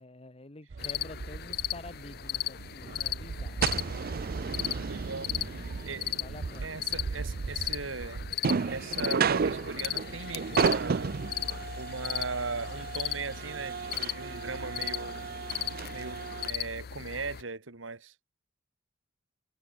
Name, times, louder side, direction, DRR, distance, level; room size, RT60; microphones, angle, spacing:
voice 1, 0.0-4.2 6.2-6.7, left 2 dB, 30° left, 1.7 m, -48 dB
sound 1, 0.7-16.5, right 5 dB, 50° right, 0.5 m, -34 dB
sound 2, 0.8-17.4, left 12 dB, 55° left, 0.5 m, -37 dB
voice 2, 4.8-5.5 5.8-6.1 6.6-8.2 8.7-11.2 11.8-15.3 15.9-18.1, right 4 dB, 80° right, 1.8 m, -38 dB
head